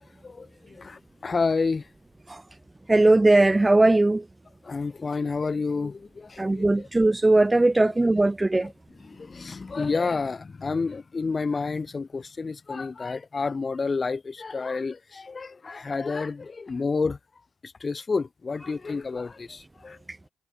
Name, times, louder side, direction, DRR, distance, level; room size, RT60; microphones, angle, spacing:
voice 1, 0.2-1.9 4.6-6.9 7.8-7.9 8.6-8.7 9.0-17.2 17.6-20.0, left 4 dB, 40° left, 6.4 m, -30 dB
voice 2, 2.9-4.2 6.4-8.7, right 2 dB, 20° right, 1.3 m, -19 dB
supercardioid pair, 55°, 0 cm